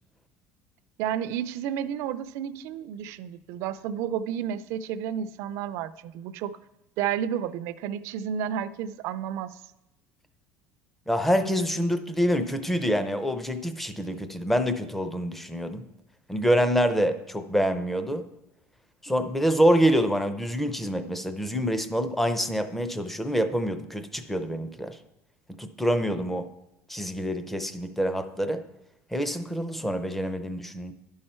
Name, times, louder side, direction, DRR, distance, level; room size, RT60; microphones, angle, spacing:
voice 1, 1.0-6.5 7.0-9.6, right 9 dB, 65° right, 14 dB, 0.4 m, -31 dB
voice 2, 11.1-15.9 16.3-18.3 19.0-25.0 25.5-26.5 26.9-28.6 29.1-30.9, equal, 5° left, 10 dB, 0.5 m, -26 dB
11.5 x 5.6 x 4.3 m, 0.93 s
cardioid pair, 140°, 5 cm